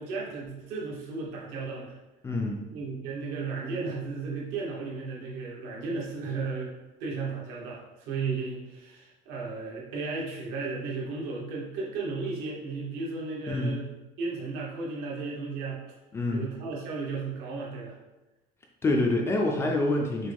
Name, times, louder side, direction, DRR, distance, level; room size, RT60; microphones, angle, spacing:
voice 1, 0.0-1.9 2.7-6.7 7.0-13.9 14.2-15.8 16.3-17.9, right 4 dB, 70° right, -3 dB, 1.3 m, -34 dB
voice 2, 2.2-2.6 13.5-13.8 16.1-16.5 18.8-20.3, left 2 dB, 15° left, 0 dB, 0.3 m, -26 dB
6.1 x 2.2 x 3.5 m, 1.0 s
cardioid pair, 175°, 17 cm